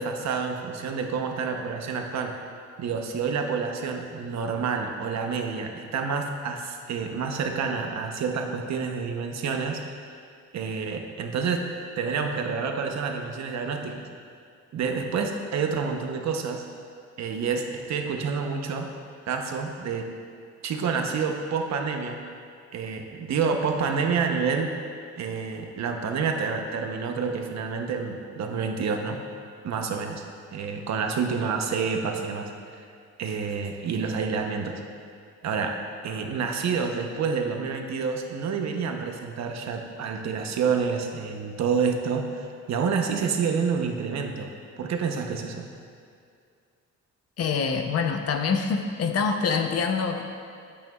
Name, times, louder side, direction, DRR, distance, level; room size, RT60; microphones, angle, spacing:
voice 1, 0.0-2.3 2.8-9.8 10.5-11.7 11.9-14.0 14.7-16.6 17.2-18.9 19.3-20.1 20.6-22.2 22.7-24.7 25.2-29.2 29.6-30.2 30.5-32.5 33.2-34.7 35.4-35.8 36.0-44.5 44.8-45.7, right 5 dB, 65° right, 4 dB, 0.9 m, -28 dB
voice 2, 47.4-50.2, left 5 dB, 55° left, 5 dB, 0.8 m, -25 dB
12.0 x 8.4 x 2.4 m, 2.4 s
cardioid pair, 125°, 30 cm